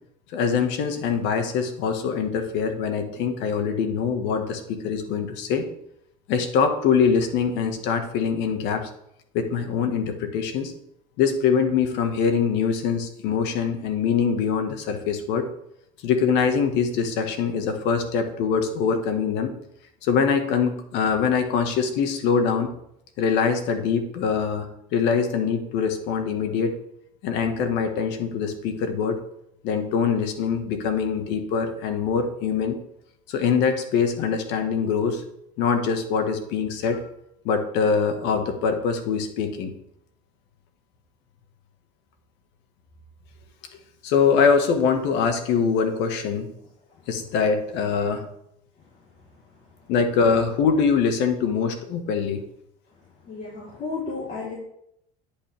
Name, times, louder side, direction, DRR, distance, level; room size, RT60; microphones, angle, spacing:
voice 1, 0.3-5.6 6.3-8.9 9.3-10.7 11.2-15.5 16.0-19.5 20.0-22.7 23.2-26.8 27.2-29.2 29.6-32.8 33.3-35.2 35.6-37.1 37.5-39.7 44.0-46.5 47.1-48.2 49.9-52.4, left 6 dB, 70° left, 6 dB, 1.8 m, -23 dB
voice 2, 53.2-54.5, left 4 dB, 45° left, -6 dB, 3.9 m, -32 dB
10.5 x 8.9 x 3.6 m, 0.75 s
supercardioid pair, 100°, 19 cm